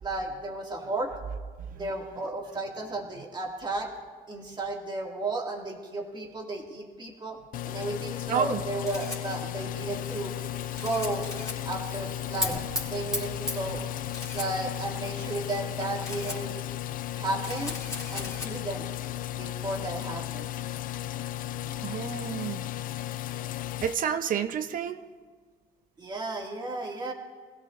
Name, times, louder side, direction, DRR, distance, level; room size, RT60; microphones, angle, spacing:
voice 1, 0.0-1.1 1.8-3.9 4.3-7.4 7.7-10.3 10.8-11.3 11.7-12.6 12.9-13.8 14.3-16.5 17.2-17.7 18.1-18.8 19.3-20.5 26.0-27.1, right 2 dB, 25° right, 0 dB, 2.2 m, -33 dB
sound 1, 7.5-23.9, left 13 dB, 55° left, 0.4 m, -35 dB
voice 2, 8.3-8.6 13.7-13.9 21.8-22.7 23.8-25.0, right 8 dB, 55° right, 9 dB, 0.8 m, -30 dB
Camera, 8.8-21.8, left 3 dB, 20° left, 2.9 m, -44 dB
Fire, 9.8-17.2, left 1 dB, 5° right, 2.9 m, -39 dB
23.5 x 16.5 x 2.6 m, 1.5 s
cardioid pair, 110°, 17 cm